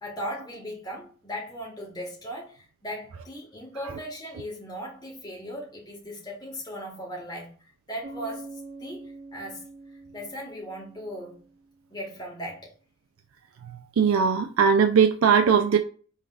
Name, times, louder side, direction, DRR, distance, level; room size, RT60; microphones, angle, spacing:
voice 1, 0.0-7.5 7.9-9.7 10.1-11.4 11.9-12.7, equal, 20° left, 1.6 m, -38 dB
Bass guitar, 8.0-11.9, right 3 dB, 15° right, 1.4 m, -44 dB
voice 2, 13.6-15.8, right 6 dB, 85° right, 0.4 m, -20 dB
5.5 x 3.5 x 2.4 m
head